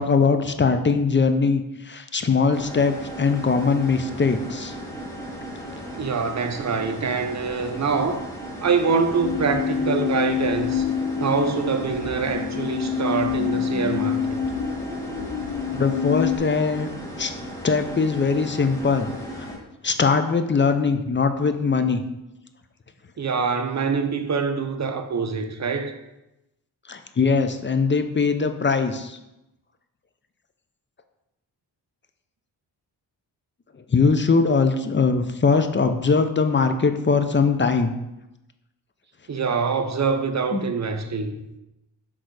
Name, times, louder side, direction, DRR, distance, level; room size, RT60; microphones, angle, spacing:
voice 1, 0.0-4.7 15.7-16.9 17.2-17.3 17.6-19.1 19.4-19.5 19.8-22.0 26.9-29.2 33.9-37.9 40.5-40.6, left 4 dB, 25° left, 8 dB, 0.5 m, -21 dB
sound 1, 2.5-19.6, equal, 5° left, 1.8 m, -36 dB
voice 2, 6.0-8.3 8.6-10.8 11.2-14.4 23.2-26.0 39.3-41.4, right 5 dB, 40° right, 7 dB, 0.8 m, -25 dB
sound 2, 9.2-16.4, left 7 dB, 50° left, 1.0 m, -27 dB
6.2 x 3.8 x 4.8 m, 0.94 s
cardioid pair, 75°, 43 cm